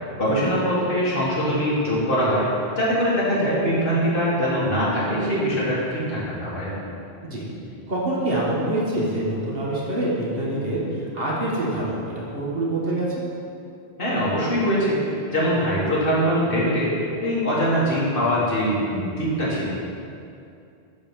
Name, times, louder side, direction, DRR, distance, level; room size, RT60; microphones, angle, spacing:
voice 1, 0.2-2.5 2.8-6.7 14.0-16.9 17.2-19.7, equal, 55° left, -7 dB, 2.2 m, -22 dB
voice 2, 7.9-13.2, right 1 dB, 60° right, -5 dB, 1.8 m, -25 dB
8.3 x 4.2 x 6.4 m, 2.5 s
omnidirectional pair, 1.1 m